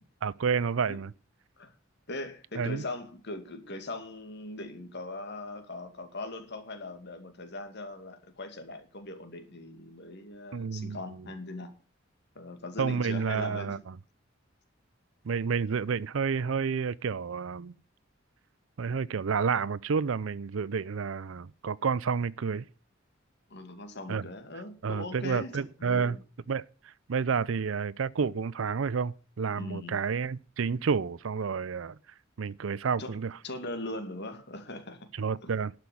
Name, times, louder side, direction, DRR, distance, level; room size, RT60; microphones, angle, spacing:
voice 1, 0.2-1.1 2.6-2.8 10.5-11.0 12.8-13.8 15.2-17.7 18.8-22.6 24.1-24.3 24.8-26.2 26.5-32.0 32.4-33.4 35.2-35.7, right 5 dB, 70° right, 0.5 m, -30 dB
voice 2, 2.1-11.7 12.3-13.8 23.5-26.2 29.6-30.0 33.0-33.2 33.4-35.1 35.4-35.5, left 2 dB, 55° left, 2.4 m, -40 dB
11.5 x 6.1 x 8.5 m
head